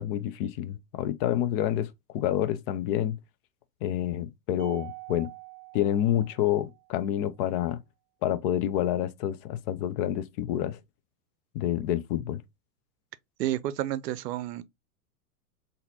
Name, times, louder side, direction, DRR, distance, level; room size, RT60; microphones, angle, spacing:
voice 1, 0.0-3.2 3.8-5.3 5.7-7.8 8.2-10.8 11.5-12.4, left 11 dB, 35° left, 0.5 m, -28 dB
Mallet percussion, 4.6-7.0, right 18 dB, 25° right, 0.8 m, -45 dB
voice 2, 13.4-14.6, right 13 dB, 75° right, 0.6 m, -30 dB
4.0 x 2.7 x 2.8 m
hypercardioid pair, 110°, 49 cm